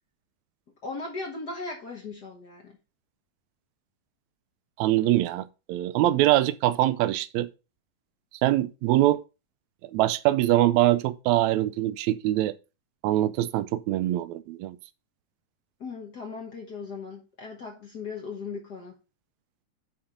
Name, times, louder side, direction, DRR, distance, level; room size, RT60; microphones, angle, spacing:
voice 1, 0.8-2.8 15.8-19.0, left 4 dB, 70° left, 0.9 m, -38 dB
voice 2, 4.8-7.5 8.4-9.2 9.8-12.5 13.0-14.8, right 15 dB, 80° right, 1.7 m, -23 dB
8.9 x 4.4 x 5.1 m
omnidirectional pair, 3.7 m